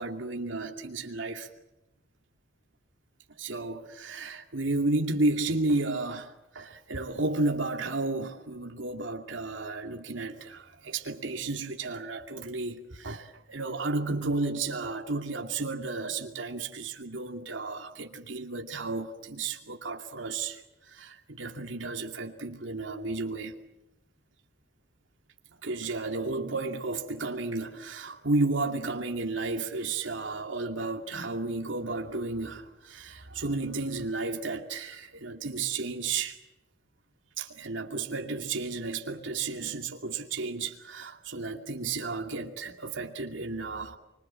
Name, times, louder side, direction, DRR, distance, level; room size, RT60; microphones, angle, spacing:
voice 1, 0.0-1.5 3.4-23.6 25.6-36.4 37.4-44.0, right 3 dB, 85° right, 2.5 m, -32 dB
26.0 x 25.0 x 7.6 m
head